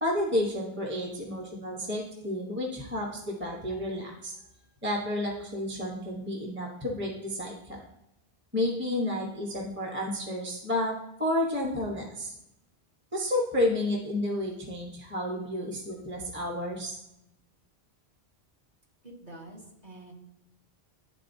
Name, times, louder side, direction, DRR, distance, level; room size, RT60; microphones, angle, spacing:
voice 1, 0.0-4.3 4.8-7.8 8.5-10.9 11.2-12.3 13.1-17.0, left 1 dB, 10° right, -1 dB, 0.9 m, -31 dB
voice 2, 19.0-20.1, right 1 dB, 40° right, -4 dB, 1.5 m, -47 dB
11.0 x 3.8 x 2.7 m, 0.86 s
omnidirectional pair, 1.1 m